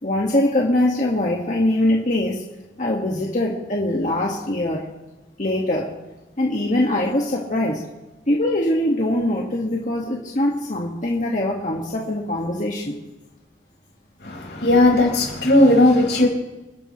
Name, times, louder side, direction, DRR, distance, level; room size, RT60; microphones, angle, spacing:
voice 1, 0.0-2.4 2.8-4.8 5.4-5.9 6.4-7.8 8.3-13.0, left 1 dB, 45° left, -3 dB, 1.8 m, -22 dB
voice 2, 14.2-16.3, left 1 dB, 85° left, -1 dB, 5.2 m, -16 dB
28.0 x 10.5 x 3.2 m, 1.1 s
head